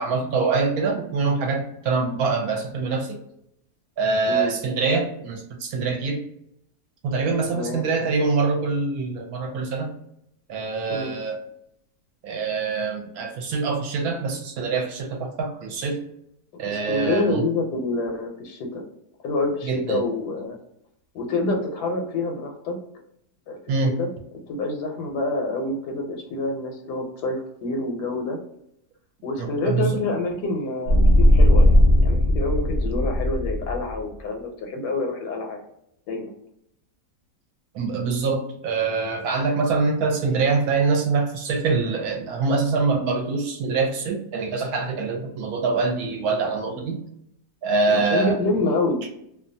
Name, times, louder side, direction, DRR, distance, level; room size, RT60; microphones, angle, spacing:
voice 1, 0.0-3.2 4.0-6.2 7.0-9.9 10.5-11.4 12.2-16.0 16.6-17.4 19.6-20.1 23.7-24.0 29.4-30.0 37.7-47.0 47.6-48.3, right 4 dB, 75° right, 3 dB, 1.0 m, -24 dB
voice 2, 7.5-7.8 10.9-11.1 16.5-18.8 19.2-20.6 21.1-22.8 23.5-23.6 23.9-24.1 24.5-28.4 29.2-35.6 36.1-36.3 47.9-49.0, left 2 dB, 85° left, 2 dB, 1.2 m, -27 dB
sound 1, 30.9-34.0, left 1 dB, 60° left, 0.7 m, -17 dB
2.7 x 2.2 x 2.5 m, 0.75 s
omnidirectional pair, 1.7 m